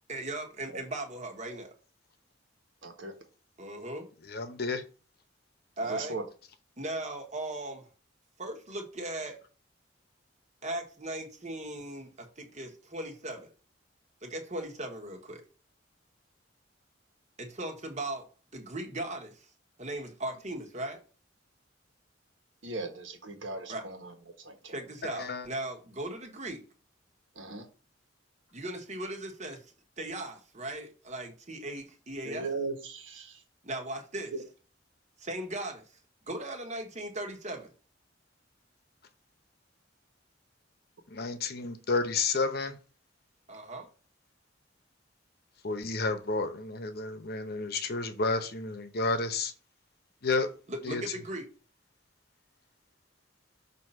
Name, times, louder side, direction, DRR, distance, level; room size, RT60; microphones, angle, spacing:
voice 1, 0.1-1.7 3.6-4.1 5.8-6.1 6.8-7.9 8.4-9.4 10.6-13.5 14.2-15.4 17.4-18.3 18.5-19.5 19.8-21.0 23.7-23.8 24.6-26.6 28.5-29.6 30.0-32.5 33.6-34.3 35.2-35.8 36.3-37.7 43.5-43.9 50.7-51.4, right 1 dB, 35° right, 1.4 m, -38 dB
voice 2, 2.8-3.1 5.9-6.2 22.6-24.1 24.4-24.7 27.4-27.6 32.2-33.4, right 3 dB, 80° right, 1.4 m, -38 dB
voice 3, 4.3-4.8 25.0-25.5 41.1-42.8 45.6-49.5 50.2-50.5 50.8-51.0, left 3 dB, 55° left, 0.8 m, -31 dB
6.2 x 2.8 x 5.5 m
head